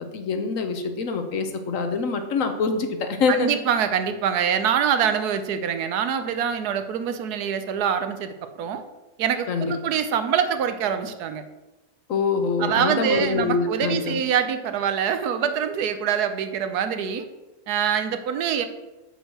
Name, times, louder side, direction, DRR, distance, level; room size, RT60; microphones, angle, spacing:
voice 1, 0.1-3.5 9.5-9.7 12.1-14.2, left 4 dB, 60° left, 7 dB, 1.1 m, -25 dB
voice 2, 3.3-8.8 9.2-11.4 12.6-17.3 17.7-18.7, right 8 dB, 80° right, 9 dB, 1.2 m, -24 dB
6.3 x 5.4 x 6.1 m, 1.1 s
omnidirectional pair, 1.7 m